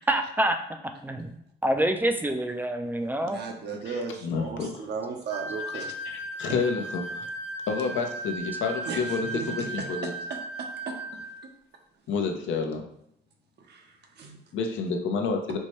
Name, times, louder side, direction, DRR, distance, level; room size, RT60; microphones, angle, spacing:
voice 1, 0.1-0.6 1.0-3.5, right 1 dB, 10° right, 6 dB, 0.4 m, -26 dB
voice 2, 3.2-5.9 8.8-9.0 9.3-11.2 13.7-13.8 14.2-14.4, right 4 dB, 55° right, 3 dB, 0.7 m, -36 dB
voice 3, 3.8-4.9 5.7-7.3 7.7-10.1 12.1-12.8 14.5-15.6, left 5 dB, 75° left, 3 dB, 0.6 m, -30 dB
sound 1, 5.3-11.4, right 2 dB, 35° left, 0.7 m, -36 dB
4.4 x 2.2 x 3.0 m, 0.74 s
cardioid pair, 90°, 20 cm